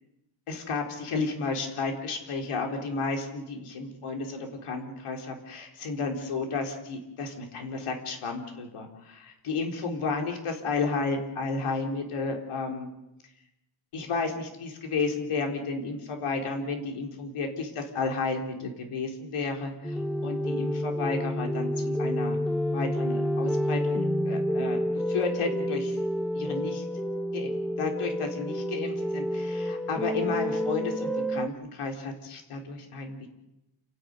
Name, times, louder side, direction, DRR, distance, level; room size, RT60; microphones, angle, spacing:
voice 1, 0.5-12.9 13.9-20.0 20.2-22.4 22.7-24.8 25.1-26.0 26.3-26.8 27.3-27.5 27.8-33.3, left 4 dB, 90° left, 3 dB, 4.4 m, -32 dB
sound 1, 19.8-31.5, equal, ahead, 0.8 m, -29 dB
29.0 x 12.5 x 9.8 m, 0.91 s
wide cardioid pair, 160°, 49 cm